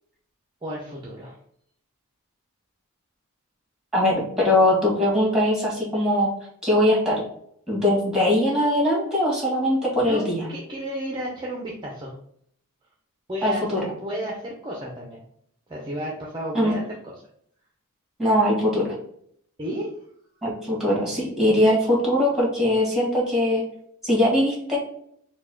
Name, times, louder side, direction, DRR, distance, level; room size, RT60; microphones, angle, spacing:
voice 1, 0.6-1.3 10.0-12.1 13.3-15.2 15.7-17.2 19.6-19.9, equal, 20° right, -2 dB, 0.6 m, -33 dB
voice 2, 3.9-6.3 6.6-7.2 7.7-10.5 13.4-13.9 16.5-16.7 18.2-18.9 20.4-23.6 24.0-24.8, left 1 dB, ahead, -4 dB, 1.7 m, -21 dB
4.5 x 2.3 x 4.3 m, 0.67 s
head